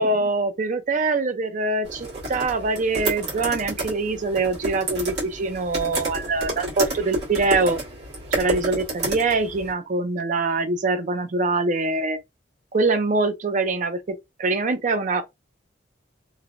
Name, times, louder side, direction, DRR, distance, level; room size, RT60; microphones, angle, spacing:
voice 1, 0.0-7.8 8.3-12.2 12.7-15.2, right 3 dB, 45° right, 0.5 m, -24 dB
sound 1, 1.8-9.7, right 2 dB, 65° right, 1.5 m, -30 dB
3.1 x 2.1 x 2.4 m
head